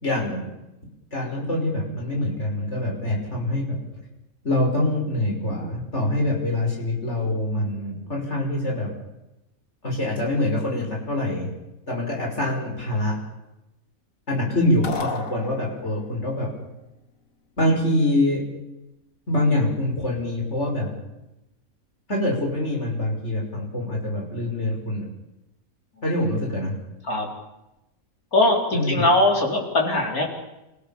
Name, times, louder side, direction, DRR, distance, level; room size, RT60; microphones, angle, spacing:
voice 1, 0.0-0.5 1.1-3.8 4.4-8.9 9.8-11.5 11.9-13.2 14.3-16.5 17.6-18.4 19.3-20.9 22.1-25.1 26.0-26.7 28.7-29.0, left 1 dB, 50° left, -1 dB, 6.0 m, -25 dB
sound 1, 14.8-16.1, left 4 dB, 70° left, 2.2 m, -32 dB
voice 2, 28.3-30.3, left 2 dB, 85° left, 0 dB, 4.7 m, -20 dB
28.0 x 16.5 x 7.2 m, 0.96 s
omnidirectional pair, 1.5 m